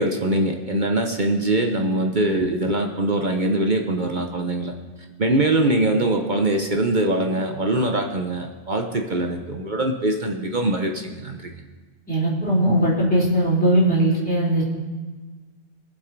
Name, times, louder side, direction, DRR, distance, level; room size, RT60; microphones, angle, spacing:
voice 1, 0.0-4.7 5.2-11.6, right 1 dB, 45° right, 4 dB, 0.9 m, -22 dB
voice 2, 12.1-14.7, right 1 dB, 5° left, -9 dB, 4.2 m, -19 dB
22.0 x 7.7 x 4.6 m, 1.3 s
omnidirectional pair, 1.3 m